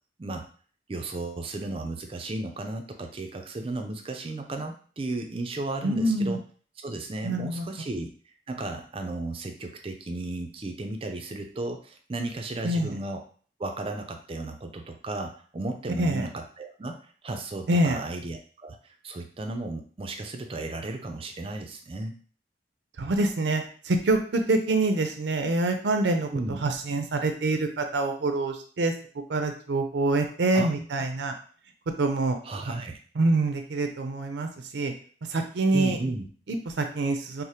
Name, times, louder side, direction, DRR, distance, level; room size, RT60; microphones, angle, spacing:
voice 1, 0.9-6.4 6.8-8.1 8.5-13.2 13.6-18.8 19.0-22.1 26.3-26.6 30.5-30.8 32.4-33.0 35.7-36.3, right 2 dB, 30° right, 4 dB, 0.4 m, -34 dB
voice 2, 5.8-6.4 7.2-7.7 12.6-12.9 16.0-16.3 17.7-18.0 23.0-26.3 26.6-28.9 29.3-31.3 32.0-32.4 33.2-34.9 35.3-36.0 36.5-37.4, right 2 dB, 80° right, 5 dB, 0.5 m, -25 dB
4.8 x 2.0 x 2.8 m, 0.43 s
head